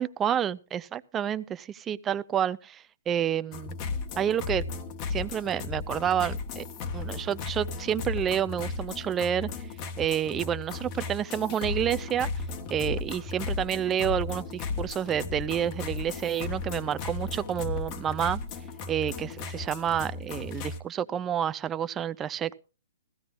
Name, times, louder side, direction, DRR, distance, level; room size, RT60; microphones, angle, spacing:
voice 1, 0.0-3.7 4.2-4.6 5.1-6.6 6.9-9.5 10.0-12.3 12.7-18.4 18.9-22.6, right 9 dB, 20° right, 0.5 m, -29 dB
sound 1, 3.5-20.8, left 4 dB, 35° left, 1.3 m, -35 dB
16.0 x 15.5 x 2.5 m
hypercardioid pair, 125°, 0 cm